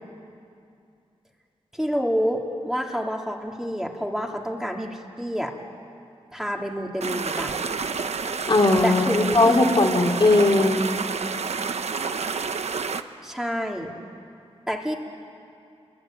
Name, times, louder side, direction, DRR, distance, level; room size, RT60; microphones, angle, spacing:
voice 1, 1.7-5.5 6.3-7.6 8.8-9.6 13.2-13.9 14.7-14.9, equal, 5° right, 0 dB, 3.1 m, -28 dB
sound 1, 7.0-13.0, right 5 dB, 80° right, 1.1 m, -29 dB
voice 2, 8.2-10.8, left 2 dB, 50° left, 1 dB, 3.1 m, -19 dB
28.5 x 22.5 x 9.3 m, 2.5 s
cardioid pair, 65°, 11 cm